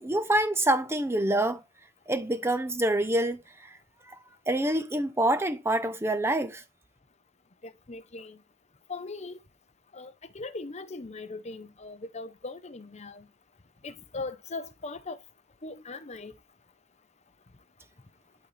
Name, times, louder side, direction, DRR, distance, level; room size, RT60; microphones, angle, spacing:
voice 1, 0.0-1.6 2.1-3.4 4.5-6.6, right 1 dB, 10° right, 0.6 m, -26 dB
voice 2, 7.6-8.4 8.9-9.4 9.9-13.3 13.8-15.2 15.6-16.3, left 3 dB, 30° left, 0.7 m, -39 dB
11.5 x 4.1 x 3.3 m
head